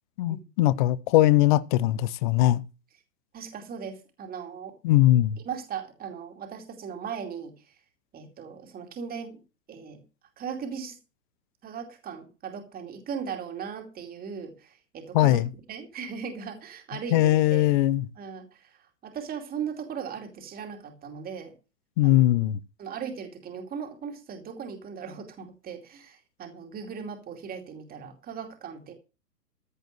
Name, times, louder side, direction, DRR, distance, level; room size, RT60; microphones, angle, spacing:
voice 1, 0.2-2.6 4.8-5.4 15.1-15.5 17.1-18.1 22.0-22.6, left 15 dB, 30° left, 0.6 m, -21 dB
voice 2, 3.3-4.7 5.4-7.7 8.1-9.4 9.7-10.0 10.4-11.0 11.6-17.7 18.2-21.5 22.0-22.2 22.8-28.9, right 7 dB, 20° right, 2.5 m, -38 dB
14.5 x 5.0 x 7.8 m
hypercardioid pair, 125°, 49 cm